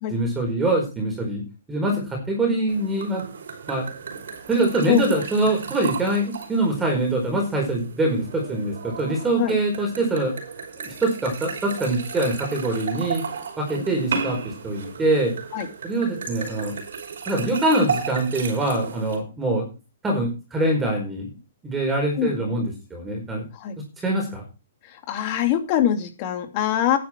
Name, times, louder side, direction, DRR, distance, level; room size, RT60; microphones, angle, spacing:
voice 1, 0.1-1.4 1.7-3.2 3.7-3.9 4.5-10.3 10.8-13.2 13.6-15.3 15.8-16.8 17.3-19.6 20.0-21.3 21.6-23.4 24.0-24.4, right 2 dB, 10° right, 0 dB, 4.7 m, -24 dB
sound 1, 2.7-19.2, right 5 dB, 70° right, 5.4 m, -34 dB
voice 2, 4.9-5.2 9.4-9.6 15.5-15.7 22.2-22.3 23.5-23.8 25.1-27.0, left 11 dB, 40° left, 7 dB, 2.6 m, -23 dB
11.0 x 9.7 x 4.5 m, 0.30 s
hypercardioid pair, 140°, 0 cm